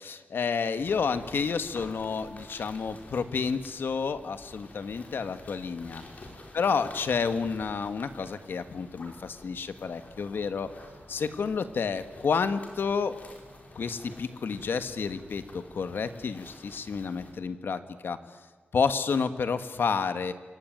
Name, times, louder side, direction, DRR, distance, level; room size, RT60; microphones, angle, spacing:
voice 1, 0.0-6.0 6.5-10.7 11.1-13.2 13.7-18.2 18.7-20.3, left 5 dB, 75° left, 10 dB, 1.6 m, -30 dB
sound 1, 0.8-17.3, left 1 dB, 45° left, 4.9 m, -49 dB
27.5 x 23.0 x 9.2 m, 1.4 s
wide cardioid pair, 160°, 4 cm